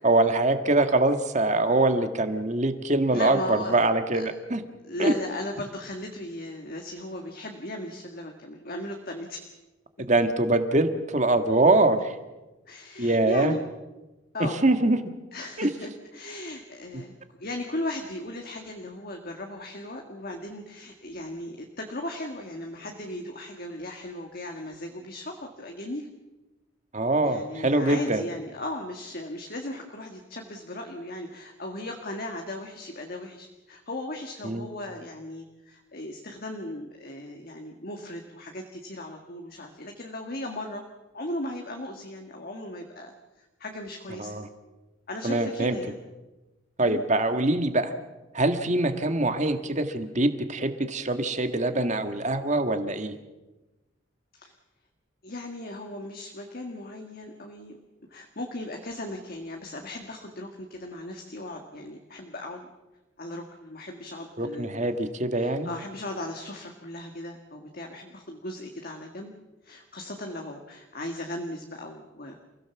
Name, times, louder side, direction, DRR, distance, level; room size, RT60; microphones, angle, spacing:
voice 1, 0.0-4.6 5.0-5.1 10.0-12.1 13.0-13.5 14.4-15.0 15.6-15.7 16.9-17.0 26.9-28.2 34.4-34.7 44.2-44.5 45.2-45.8 46.8-47.9 48.3-53.1 64.4-65.7, right 2 dB, 35° right, 8 dB, 1.7 m, -24 dB
voice 2, 3.1-3.7 4.1-4.3 4.9-9.5 12.7-13.6 14.3-14.6 15.3-17.1 17.4-26.1 27.2-40.8 41.1-44.4 45.1-46.0 46.8-47.0 54.3-54.5 55.2-57.8 58.1-62.7 63.2-64.9 65.4-69.3 69.6-72.4, left 1 dB, 50° left, 3 dB, 1.9 m, -37 dB
29.0 x 16.5 x 7.2 m, 1.1 s
head